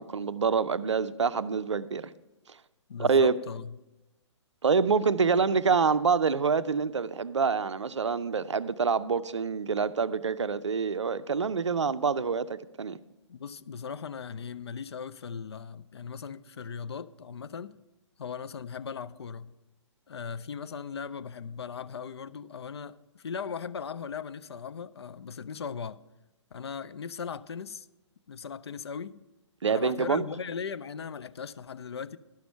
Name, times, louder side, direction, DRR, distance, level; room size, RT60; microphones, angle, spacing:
voice 1, 0.0-2.1 3.0-3.3 4.6-13.0 29.6-30.3, right 5 dB, 70° right, 0.4 m, -26 dB
voice 2, 2.9-3.8 13.3-17.8 18.2-19.5 20.1-26.0 26.5-27.9 28.3-29.2 29.7-32.2, left 6 dB, 60° left, 0.4 m, -38 dB
11.5 x 5.9 x 5.5 m
figure-of-eight pair, 125°, 16 cm